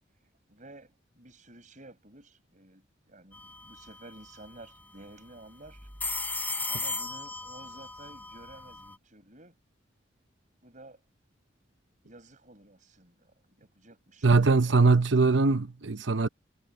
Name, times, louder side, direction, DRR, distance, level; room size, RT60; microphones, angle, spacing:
voice 1, 0.1-5.9 6.7-9.5 10.6-11.0 12.0-14.9, right 2 dB, 40° right, 7.4 m, -52 dB
sound 1, 3.3-3.6 3.9-4.0 5.8-8.9, left 3 dB, 10° left, 7.7 m, -35 dB
voice 2, 14.2-16.3, right 3 dB, 70° right, 0.9 m, -22 dB
head